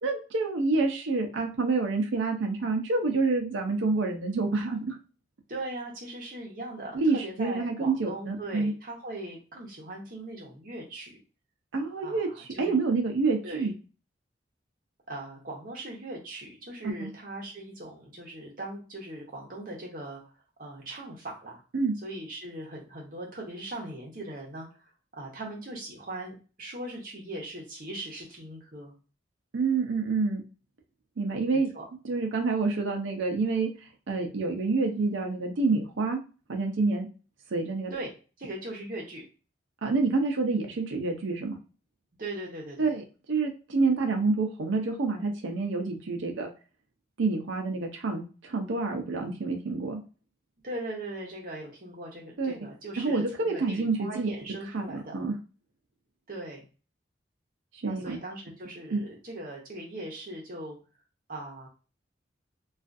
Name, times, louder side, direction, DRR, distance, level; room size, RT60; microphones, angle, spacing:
voice 1, 0.0-5.0 6.9-8.7 11.7-13.7 16.8-17.1 21.7-22.0 29.5-30.4 31.2-31.7 32.0-36.2 36.5-37.1 37.5-37.9 39.8-41.6 42.8-46.5 47.2-50.0 52.4-52.6 53.0-54.3 54.7-55.3 57.7-58.2 58.9-59.1, right 3 dB, 85° right, 3 dB, 0.5 m, -28 dB
voice 2, 5.5-11.2 12.0-12.7 13.4-13.7 15.1-20.2 20.6-21.6 22.0-28.9 31.5-31.8 37.9-38.1 38.4-39.3 42.2-42.9 50.6-55.1 56.3-56.6 57.9-60.8 61.3-61.7, right 1 dB, 45° right, -1 dB, 0.8 m, -40 dB
2.4 x 2.3 x 2.5 m, 0.35 s
head